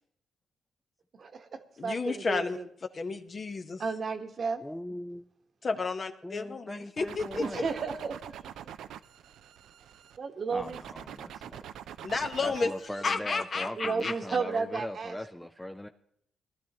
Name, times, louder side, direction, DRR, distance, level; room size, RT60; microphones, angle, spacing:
voice 1, 1.2-2.7 3.8-4.6 7.4-8.5 10.2-10.8 13.8-15.2, right 5 dB, 55° right, 6 dB, 1.2 m, -33 dB
voice 2, 1.8-2.6 2.9-3.8 5.6-7.6 12.0-12.7 13.0-14.2, left 4 dB, 45° left, 7 dB, 1.0 m, -32 dB
voice 3, 4.6-5.3 6.2-7.7 10.5-11.7 12.4-15.9, left 1 dB, 10° left, 6 dB, 0.5 m, -40 dB
sound 1, 7.0-10.2 10.6-12.9, right 10 dB, 80° right, 0.4 m, -44 dB
19.5 x 12.0 x 2.9 m, 0.67 s
supercardioid pair, 65°, 0 cm